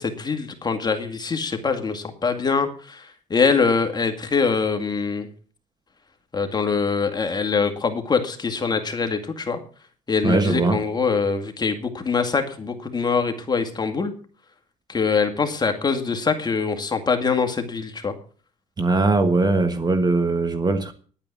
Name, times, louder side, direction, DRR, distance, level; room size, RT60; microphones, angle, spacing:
voice 1, 0.0-5.3 6.3-9.6 10.1-14.1 14.9-18.1, left 5 dB, 25° left, 2.2 m, -23 dB
voice 2, 10.2-10.8 18.8-20.9, right 3 dB, 25° right, 1.4 m, -20 dB
11.0 x 9.0 x 8.4 m
cardioid pair, 110°, 17 cm